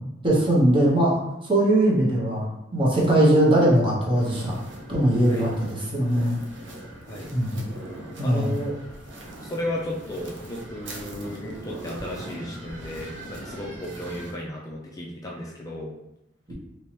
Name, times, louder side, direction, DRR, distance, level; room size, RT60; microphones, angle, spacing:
voice 1, 0.2-1.2 1.4-2.5 2.7-4.6 4.9-6.4 7.3-7.7 8.2-8.5, right 1 dB, 30° right, -5 dB, 1.0 m, -20 dB
sound 1, 4.1-14.3, right 1 dB, 70° right, 0.7 m, -41 dB
voice 2, 8.2-8.8 9.4-16.0, left 1 dB, 20° left, -3 dB, 0.4 m, -34 dB
3.3 x 3.1 x 2.9 m, 0.87 s
head